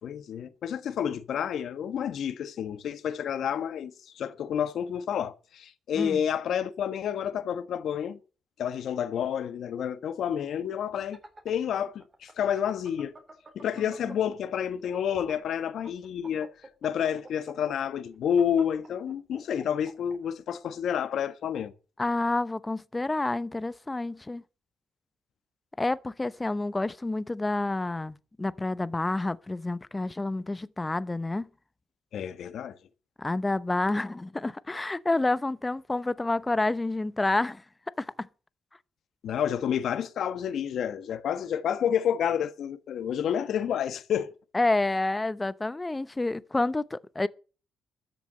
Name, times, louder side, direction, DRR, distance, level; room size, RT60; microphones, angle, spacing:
voice 1, 0.0-8.2 8.6-13.1 13.5-16.5 16.8-21.7 32.1-32.8 39.2-44.3, left 8 dB, 70° left, 1.3 m, -29 dB
sound 1, 10.9-14.5 14.8-20.2, right 2 dB, 30° right, 3.6 m, -48 dB
voice 2, 22.0-24.4 25.8-31.5 33.2-37.6 38.0-38.3 44.5-47.3, left 2 dB, 15° left, 0.8 m, -29 dB
13.0 x 7.0 x 8.7 m
cardioid pair, 90°, 0 cm